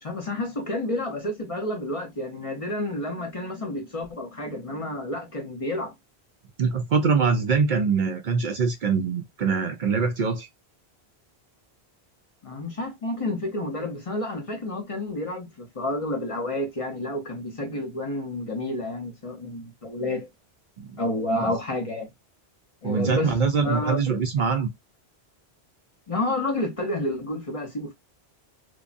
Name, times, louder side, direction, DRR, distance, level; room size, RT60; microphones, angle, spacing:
voice 1, 0.0-5.9 12.4-20.3 21.0-22.1 22.8-23.4 23.6-24.0 26.1-27.9, left 1 dB, 35° left, 0.7 m, -30 dB
voice 2, 6.6-10.5 20.8-21.0 22.8-24.7, right 5 dB, 60° right, 0.6 m, -23 dB
3.2 x 2.1 x 2.5 m
omnidirectional pair, 1.1 m